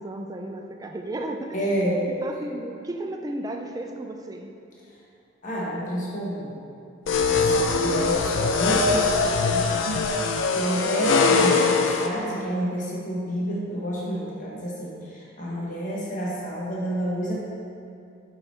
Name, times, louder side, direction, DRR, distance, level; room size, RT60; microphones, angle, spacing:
voice 1, 0.0-1.6 2.2-4.5, right 1 dB, 20° right, 3 dB, 0.3 m, -33 dB
voice 2, 1.5-2.1 5.4-6.6 7.1-9.7 10.6-17.3, equal, 40° left, -5 dB, 1.0 m, -29 dB
sound 1, 7.1-12.1, left 4 dB, 75° left, 0.5 m, -22 dB
5.7 x 4.7 x 4.0 m, 2.5 s
head